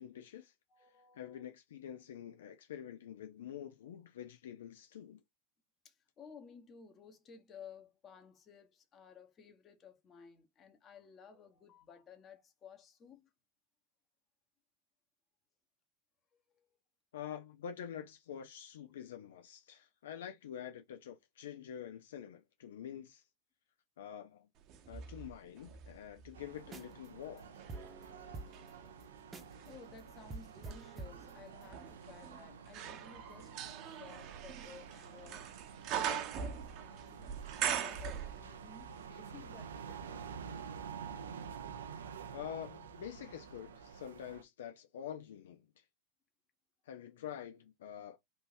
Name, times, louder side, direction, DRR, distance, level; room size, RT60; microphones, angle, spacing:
voice 1, 0.0-0.5 1.1-5.2 17.1-23.2 24.0-24.5 24.9-27.6 42.3-45.8 46.9-48.2, left 9 dB, 80° left, 0.5 m, -47 dB
voice 2, 0.7-1.4 5.8-13.3 16.5-16.7 27.9-29.1 29.6-35.5 35.9-37.2 37.5-40.2, left 6 dB, 35° left, 1.1 m, -56 dB
sound 1, 24.7-26.9 27.4-38.8 39.0-39.1, right 9 dB, 50° right, 0.8 m, -42 dB
sound 2, 26.3-44.4, right 6 dB, 90° right, 0.5 m, -49 dB
sound 3, 26.6-27.1 27.4-27.5 27.7-29.7 30.0-30.1 30.3-31.7, right 3 dB, 25° right, 0.8 m, -48 dB
3.6 x 2.7 x 2.6 m
hypercardioid pair, 105°, 0 cm